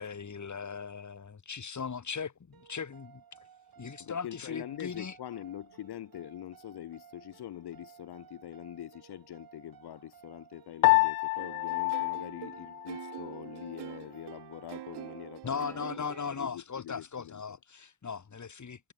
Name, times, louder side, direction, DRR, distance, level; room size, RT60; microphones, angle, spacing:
voice 1, 0.0-3.2 3.8-5.1 15.4-18.9, left 6 dB, 45° left, 4.6 m, -38 dB
sound 1, 2.5-15.3, right 8 dB, 55° right, 5.9 m, -57 dB
voice 2, 4.0-17.6, left 12 dB, 70° left, 3.9 m, -44 dB
Piano, 10.8-13.4, left 25 dB, 90° left, 0.6 m, -28 dB
sound 2, 11.4-16.5, right 15 dB, 75° right, 5.8 m, -46 dB
hypercardioid pair, 40°, 41 cm